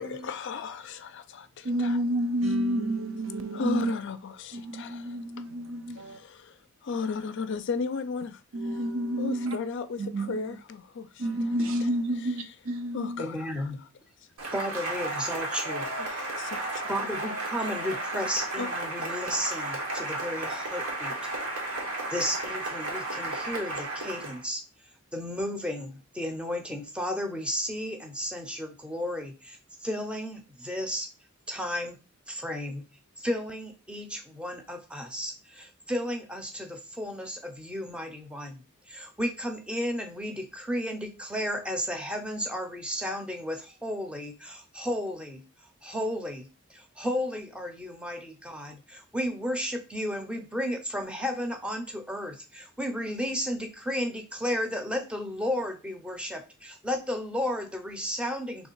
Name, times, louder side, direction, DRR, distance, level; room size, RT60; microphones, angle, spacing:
voice 1, 0.0-2.0 2.4-2.5 3.5-5.2 6.0-8.8 9.2-12.6 12.9-13.9 16.0-16.8 18.3-18.7, left 5 dB, 55° left, 0.4 m, -36 dB
voice 2, 1.6-3.9 4.5-6.2 8.5-9.6 10.0-10.4 11.2-13.2, right 1 dB, 65° right, 0.6 m, -29 dB
voice 3, 13.2-13.8 14.5-15.9 16.9-21.2 22.1-24.6 25.1-31.1 31.5-32.0 32.3-32.9 33.2-45.4 45.8-58.7, equal, 5° right, 0.6 m, -33 dB
Cheering / Applause, 14.4-24.4, right 2 dB, 90° right, 1.4 m, -33 dB
3.2 x 3.2 x 4.6 m
head